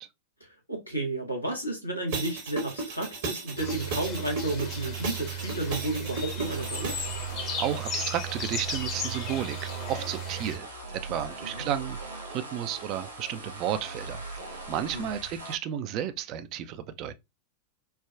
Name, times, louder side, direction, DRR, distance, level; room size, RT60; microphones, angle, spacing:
voice 1, 0.4-7.0 11.1-11.6 14.9-15.1, right 2 dB, 90° left, 0.9 m, -32 dB
sound 1, 2.1-7.1, right 3 dB, 55° right, 1.0 m, -35 dB
sound 2, 3.6-10.6, right 1 dB, 35° left, 0.7 m, -35 dB
sound 3, 6.2-15.5, right 2 dB, 80° right, 0.6 m, -41 dB
voice 2, 7.6-17.1, right 10 dB, 40° right, 0.3 m, -33 dB
3.3 x 2.2 x 2.3 m
figure-of-eight pair, 90°, 0 cm